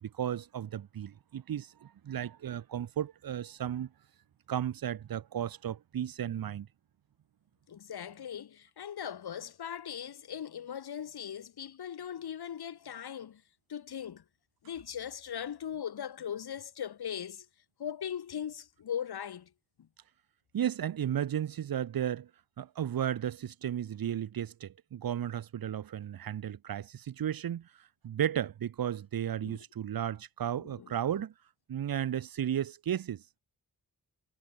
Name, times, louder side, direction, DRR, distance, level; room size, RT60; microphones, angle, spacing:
voice 1, 0.0-3.9 4.5-6.7 20.5-22.3 22.6-27.7 28.0-31.3 31.7-33.2, right 10 dB, 65° right, 1.0 m, -34 dB
voice 2, 7.7-13.4 13.7-14.2 14.6-17.5 17.8-19.5 19.8-19.9 29.4-29.6 30.6-30.9, left 9 dB, 85° left, 3.6 m, -39 dB
wide cardioid pair, 155°, 37 cm